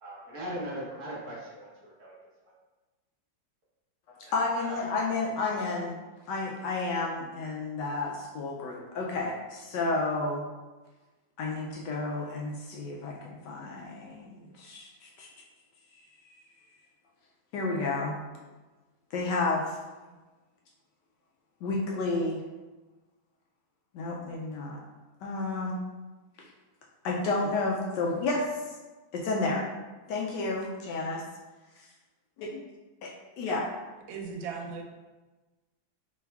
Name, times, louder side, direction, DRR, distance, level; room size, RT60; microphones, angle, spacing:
voice 1, 0.0-2.2 4.2-4.8 5.5-5.8, equal, 45° right, -6 dB, 1.2 m, -40 dB
voice 2, 4.1-6.0 6.3-10.5 11.4-15.3 17.5-18.2 19.1-19.8 21.6-22.4 23.9-24.8 25.2-25.8 27.0-28.7 29.1-29.7 30.1-31.2 32.4-32.6 33.0-33.6, left 3 dB, 75° left, -1 dB, 1.1 m, -31 dB
voice 3, 34.1-34.8, right 5 dB, 90° right, 2 dB, 1.4 m, -37 dB
3.5 x 3.1 x 3.3 m, 1.2 s
omnidirectional pair, 2.1 m